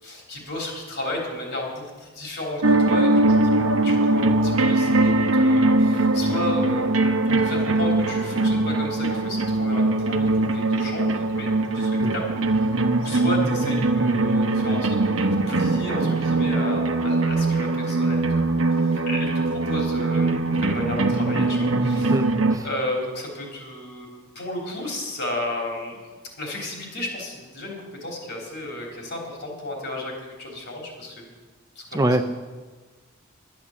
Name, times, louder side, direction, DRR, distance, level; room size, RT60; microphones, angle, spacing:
voice 1, 0.0-3.4 3.8-22.2 22.6-31.3 31.8-32.2, left 1 dB, 60° left, -1 dB, 3.6 m, -33 dB
sound 1, 2.6-22.6, right 2 dB, 75° right, 0.9 m, -21 dB
voice 2, 22.1-22.7 31.9-32.2, right 1 dB, 15° right, 8 dB, 0.5 m, -24 dB
11.5 x 9.6 x 7.3 m, 1.4 s
head